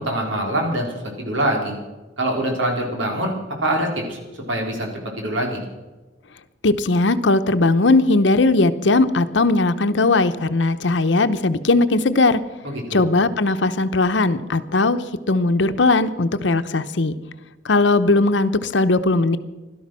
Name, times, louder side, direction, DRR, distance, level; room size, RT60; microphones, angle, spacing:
voice 1, 0.0-1.8 2.2-3.3 3.6-4.2 4.5-4.9 5.2-5.6 12.6-13.1, right 1 dB, 90° right, 0 dB, 4.0 m, -24 dB
voice 2, 6.6-12.4 12.9-15.0 15.3-17.1 17.7-19.4, left 2 dB, 70° left, 11 dB, 0.8 m, -18 dB
17.0 x 12.5 x 6.2 m, 1.2 s
head